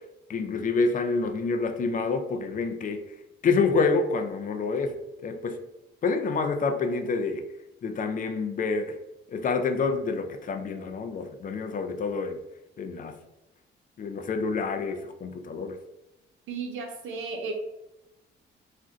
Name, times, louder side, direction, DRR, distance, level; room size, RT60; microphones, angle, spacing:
voice 1, 0.3-3.0 3.4-4.9 5.2-5.6 6.0-7.4 7.8-9.0 9.3-12.4 12.8-13.2 14.0-15.7, left 4 dB, 45° left, 6 dB, 0.4 m, -27 dB
voice 2, 16.5-17.5, right 4 dB, 80° right, 3 dB, 0.7 m, -34 dB
2.5 x 2.1 x 3.7 m, 0.91 s
cardioid pair, 90°, 20 cm